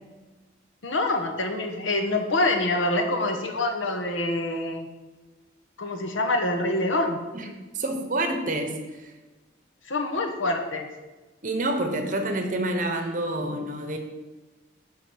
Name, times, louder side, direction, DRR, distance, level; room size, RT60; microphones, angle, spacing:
voice 1, 0.8-4.9 5.8-7.2 9.9-10.9, left 2 dB, 75° left, 5 dB, 1.0 m, -26 dB
voice 2, 7.7-9.1 11.4-14.0, right 1 dB, 40° right, 5 dB, 0.9 m, -28 dB
9.6 x 3.8 x 6.3 m, 1.2 s
head